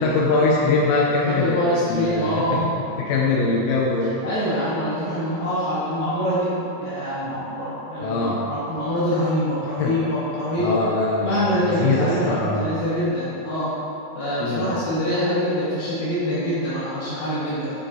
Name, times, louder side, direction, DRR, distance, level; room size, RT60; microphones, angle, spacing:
voice 1, 0.0-1.6 1.9-4.2 7.2-7.4 8.0-8.4 9.8-9.9 10.6-12.7 14.4-14.7, left 3 dB, 80° left, -3 dB, 3.1 m, -22 dB
voice 2, 1.3-2.5 4.2-10.8 11.2-13.7 14.1-17.7, equal, 60° left, -11 dB, 2.6 m, -25 dB
10.5 x 7.0 x 2.7 m, 2.9 s
omnidirectional pair, 5.6 m